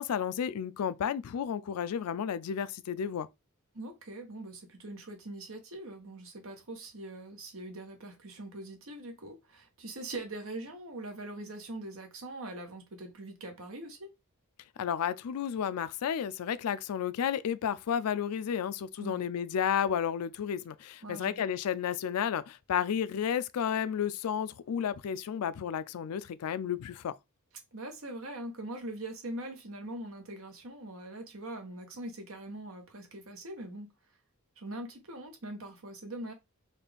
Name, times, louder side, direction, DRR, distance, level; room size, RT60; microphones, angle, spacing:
voice 1, 0.0-3.3 14.8-27.1, left 8 dB, 90° left, 0.4 m, -32 dB
voice 2, 3.7-14.1 19.0-19.2 21.0-21.5 27.7-33.9 34.6-36.3, right 1 dB, 70° right, 1.0 m, -42 dB
4.1 x 2.4 x 3.4 m
head